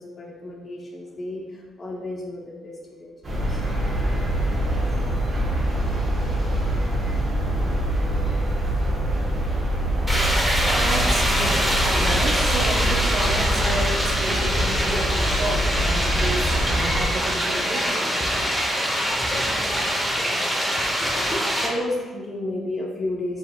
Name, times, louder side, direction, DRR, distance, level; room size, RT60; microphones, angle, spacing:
voice 1, 0.0-3.6 21.6-23.4, left 1 dB, 35° left, -3 dB, 0.8 m, -32 dB
sound 1, 3.2-17.1, right 1 dB, 35° right, 1.1 m, -24 dB
sound 2, 10.1-21.7, equal, ahead, 0.9 m, -24 dB
voice 2, 10.7-17.8, right 3 dB, 55° right, 2 dB, 0.7 m, -31 dB
5.0 x 3.9 x 2.2 m, 1.5 s
cardioid pair, 90°, 0 cm